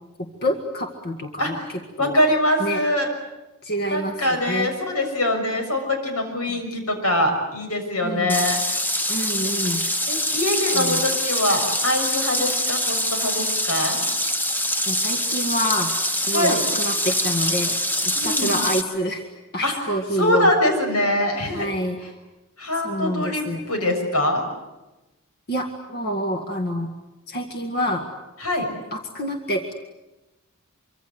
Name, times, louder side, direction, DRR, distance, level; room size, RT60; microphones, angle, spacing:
voice 1, 0.4-2.2 2.6-2.8 3.6-4.7 6.5-6.6 8.0-8.4 9.1-9.8 10.5-11.0 14.9-17.8 18.0-19.3 19.5-20.5 21.5-22.0 22.8-23.6 25.5-26.9 27.3-28.0 28.9-29.7, equal, 45° left, 4 dB, 2.0 m, -27 dB
voice 2, 1.4-3.1 3.9-8.6 10.1-14.0 16.3-16.6 18.1-18.5 19.6-19.9 20.2-21.7 22.0-22.1 22.6-24.4 28.4-28.7, left 1 dB, 90° left, 5 dB, 6.6 m, -23 dB
sound 1, 8.3-18.8, equal, 10° left, 1.2 m, -24 dB
25.5 x 24.5 x 8.0 m, 1.0 s
head